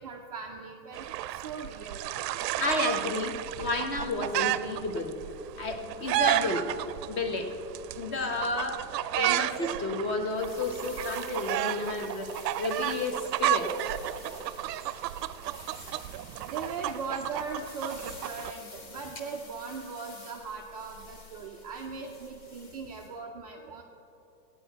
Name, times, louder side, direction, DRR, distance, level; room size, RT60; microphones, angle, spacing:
voice 1, 0.0-2.0 16.4-23.8, right 4 dB, 25° right, -2 dB, 0.4 m, -39 dB
sound 1, 0.9-18.5, right 13 dB, 80° right, 0.6 m, -32 dB
voice 2, 2.6-5.2 5.6-6.6 7.1-7.5 7.9-8.8 9.1-12.3 12.6-13.7, left 3 dB, 25° left, 5 dB, 1.0 m, -31 dB
sound 2, 10.3-23.1, left 3 dB, 80° left, 3.2 m, -50 dB
16.5 x 9.1 x 4.5 m, 3.0 s
supercardioid pair, 160°, 49 cm